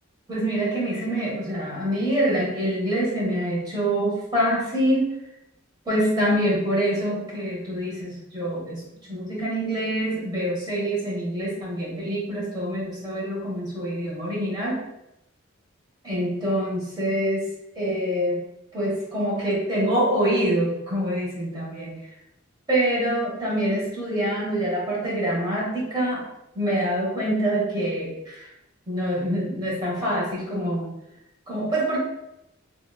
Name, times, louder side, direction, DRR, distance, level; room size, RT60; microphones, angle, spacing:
voice 1, 0.3-5.1 5.8-14.8 16.0-17.5 17.7-18.4 18.7-22.0 22.7-26.3 26.5-28.5 28.9-30.9 31.5-32.0, right 1 dB, 20° right, -6 dB, 1.1 m, -25 dB
3.2 x 3.0 x 2.2 m, 0.85 s
head